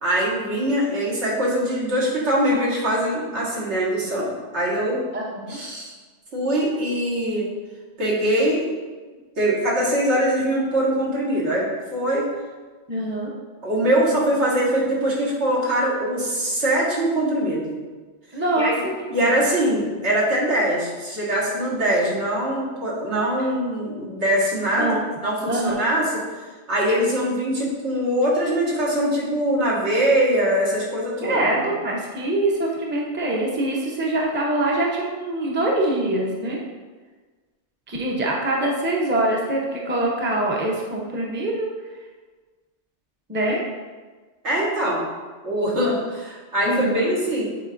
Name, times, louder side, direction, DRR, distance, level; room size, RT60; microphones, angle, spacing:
voice 1, 0.0-5.0 5.5-5.9 6.3-7.5 8.0-8.7 9.4-12.3 13.6-17.8 18.6-18.7 19.1-24.9 25.2-26.1 26.7-31.7 44.4-45.0 45.4-47.4, right 1 dB, 75° right, -5 dB, 1.8 m, -22 dB
voice 2, 5.1-5.6 12.9-13.3 18.3-19.2 24.8-25.0 25.5-25.8 31.2-36.6 37.9-41.7 43.3-43.6 46.6-47.1, right 1 dB, 10° right, -2 dB, 0.6 m, -24 dB
8.6 x 4.3 x 2.6 m, 1.4 s
omnidirectional pair, 1.2 m